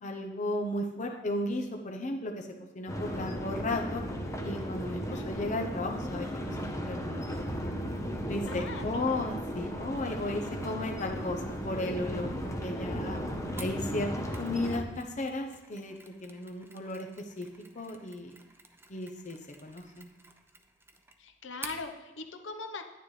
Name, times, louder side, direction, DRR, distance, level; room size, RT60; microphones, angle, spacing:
voice 1, 0.0-2.5 2.7-4.0 4.4-7.3 8.3-13.2 13.6-17.5 17.7-18.3 18.9-20.1, left 2 dB, 40° left, 3 dB, 0.8 m, -35 dB
voice 2, 1.0-1.3 4.9-5.3 8.5-9.3 21.2-22.8, left 4 dB, 75° left, 5 dB, 1.0 m, -42 dB
sound 1, 2.9-14.8, equal, 15° left, 1.0 m, -35 dB
Mechanisms, 13.6-21.9, right 3 dB, 10° right, 0.7 m, -51 dB
10.5 x 9.7 x 3.3 m, 1.2 s
head